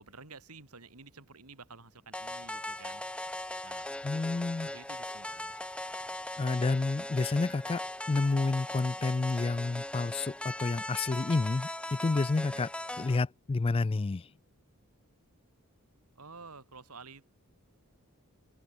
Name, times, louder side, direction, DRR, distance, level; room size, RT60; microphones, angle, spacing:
voice 1, 0.0-3.0 3.6-3.9 4.6-5.5 12.4-12.7 16.2-17.3, right 4 dB, 85° right, 2.9 m, -51 dB
sound 1, 2.1-13.2, left 1 dB, 5° left, 0.8 m, -39 dB
voice 2, 4.0-4.7 6.4-7.8 8.1-12.7 13.0-14.3, left 3 dB, 25° left, 0.4 m, -29 dB
open air
head